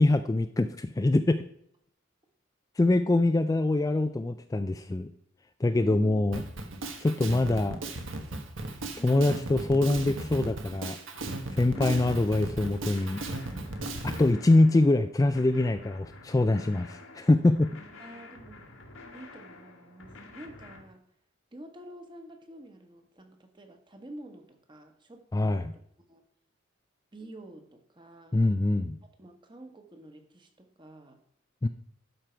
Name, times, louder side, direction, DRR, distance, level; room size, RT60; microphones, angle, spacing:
voice 1, 0.0-1.5 2.8-5.1 5.6-6.4 7.0-7.8 9.0-11.0 11.6-13.2 14.0-17.7 25.3-25.7 28.3-29.0 31.6-31.7, left 2 dB, 15° left, 9 dB, 0.3 m, -24 dB
voice 2, 5.7-6.2 8.9-9.4 11.7-12.1 18.0-18.7 19.1-21.0 21.5-25.7 26.1-26.2 27.1-28.4 29.2-31.2, right 1 dB, 25° right, 5 dB, 1.2 m, -47 dB
Drum kit, 6.3-14.3, right 2 dB, 75° right, 1.4 m, -36 dB
sound 1, 11.1-20.8, left 2 dB, 80° left, 1.6 m, -49 dB
12.0 x 5.3 x 4.5 m, 0.69 s
head